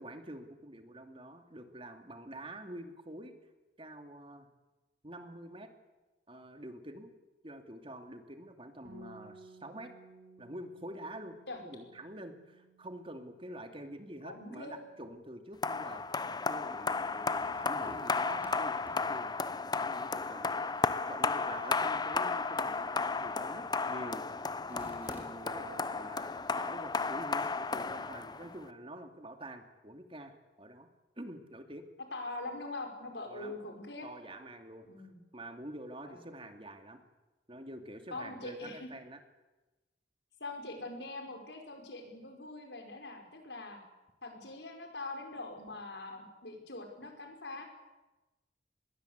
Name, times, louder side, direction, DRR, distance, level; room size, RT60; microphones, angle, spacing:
voice 1, 0.0-3.3 3.8-4.5 5.0-5.7 6.3-7.2 7.4-9.9 10.4-11.4 11.6-30.9 31.2-31.8 33.2-33.5 34.0-34.9 35.3-37.0 37.5-39.2, right 1 dB, 30° right, 6 dB, 2.6 m, -47 dB
Bass guitar, 8.8-15.1, right 2 dB, 70° right, 6.7 m, -58 dB
voice 2, 14.2-14.8 18.4-18.5 32.1-34.1 34.9-35.2 36.1-36.2 38.1-38.9 40.4-43.8 44.2-47.6, left 2 dB, 75° left, 4 dB, 5.4 m, -43 dB
sound 1, 15.6-28.6, left 4 dB, 25° left, 0.8 m, -34 dB
sound 2, 16.8-28.0, equal, 10° right, 4.2 m, -58 dB
26.5 x 21.0 x 8.3 m, 1.1 s
head